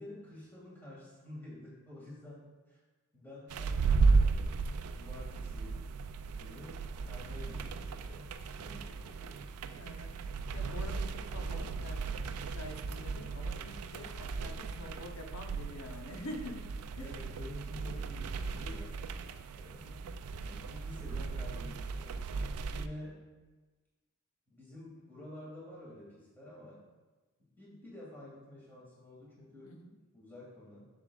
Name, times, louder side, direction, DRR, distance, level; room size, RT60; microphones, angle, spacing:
voice 1, 0.0-2.8 3.1-5.8 6.3-9.4 14.3-14.6 17.0-19.0 19.5-20.0 20.4-22.2 22.7-23.3 24.5-26.8 27.6-29.8 30.1-30.8, left 1 dB, 10° left, -7 dB, 2.1 m, -50 dB
sound 1, 3.5-22.9, right 4 dB, 90° right, 0.4 m, -35 dB
voice 2, 9.8-10.2 10.5-16.6 17.0-17.2 17.8-18.3 19.8-20.1 29.6-29.9, left 1 dB, 75° left, 3 dB, 0.9 m, -47 dB
7.1 x 7.0 x 2.4 m, 1.2 s
head